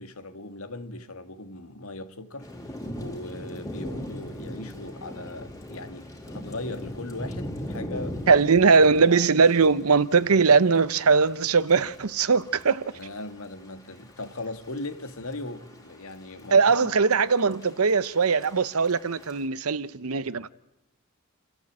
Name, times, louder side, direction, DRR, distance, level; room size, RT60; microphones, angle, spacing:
voice 1, 0.0-2.5 3.0-8.2 12.9-16.9, left 2 dB, 85° left, 2.0 m, -38 dB
Thunder / Rain, 2.4-19.4, equal, 15° left, 3.7 m, -40 dB
voice 2, 8.3-12.8 16.5-20.5, right 5 dB, 90° right, 0.8 m, -20 dB
30.0 x 13.5 x 8.7 m
head